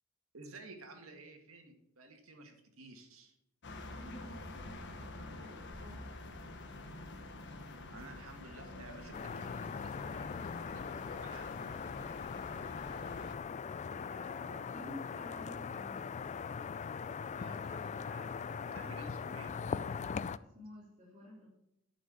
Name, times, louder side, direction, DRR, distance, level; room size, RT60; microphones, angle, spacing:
voice 1, 0.3-3.4 7.9-10.3 10.5-12.6 17.3-19.5, right 2 dB, 75° right, 4 dB, 2.0 m, -54 dB
sound 1, 3.6-13.4, left 2 dB, 60° left, 1.3 m, -47 dB
voice 2, 3.9-6.1 13.9-16.1 20.3-21.5, left 1 dB, 35° right, -7 dB, 3.5 m, -52 dB
sound 2, 9.1-20.4, left 6 dB, 35° left, 0.3 m, -40 dB
11.0 x 5.7 x 6.8 m, 0.81 s
head